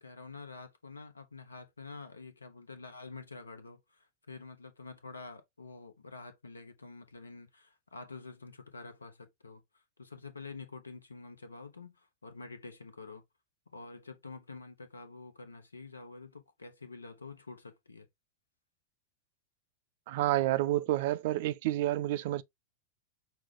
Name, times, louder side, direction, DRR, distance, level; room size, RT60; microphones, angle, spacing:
voice 1, 0.0-13.2 13.7-18.1, left 4 dB, 75° left, 0.9 m, -48 dB
voice 2, 20.1-22.4, right 15 dB, 50° right, 0.4 m, -29 dB
5.9 x 2.3 x 3.6 m
figure-of-eight pair, 90°, 0 cm